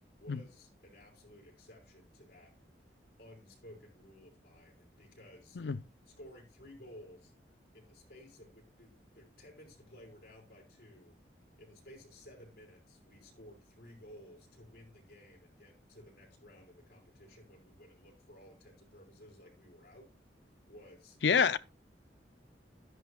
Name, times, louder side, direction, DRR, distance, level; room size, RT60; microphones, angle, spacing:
voice 1, 0.2-2.5 3.2-5.6 6.2-7.3 7.7-11.2 11.6-20.1 20.7-21.2, left 1 dB, 60° left, 5.3 m, -56 dB
voice 2, 21.2-21.6, left 6 dB, 75° left, 0.5 m, -27 dB
11.5 x 10.5 x 2.4 m
head